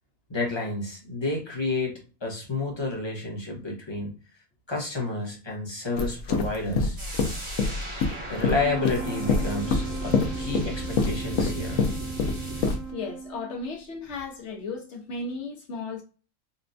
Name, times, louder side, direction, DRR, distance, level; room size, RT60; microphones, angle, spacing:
voice 1, 0.3-4.1 4.7-7.0 8.3-11.8, left 2 dB, 25° left, 0.9 m, -30 dB
sound 1, 6.0-12.8, left 4 dB, 85° left, 1.0 m, -26 dB
sound 2, 7.0-12.8, right 1 dB, 25° right, 0.9 m, -37 dB
sound 3, 8.5-13.9, right 5 dB, 60° right, 1.7 m, -38 dB
voice 2, 12.9-16.0, left 3 dB, 65° left, 1.2 m, -35 dB
4.1 x 2.2 x 2.6 m
omnidirectional pair, 1.3 m